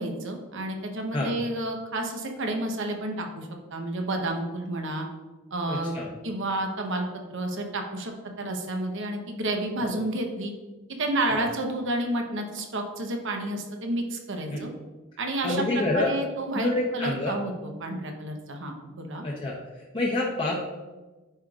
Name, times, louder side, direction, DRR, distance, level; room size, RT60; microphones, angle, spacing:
voice 1, 0.0-5.1 5.5-5.9 6.2-8.1 8.4-10.5 11.0-14.7 15.2-19.2, right 1 dB, 60° right, 3 dB, 0.9 m, -30 dB
voice 2, 5.7-6.1 9.8-9.9 11.3-11.4 14.5-14.7 15.4-16.2 16.5-17.4 19.2-19.5 19.9-20.7, left 2 dB, 20° left, -5 dB, 0.7 m, -27 dB
9.9 x 4.9 x 2.4 m, 1.2 s
head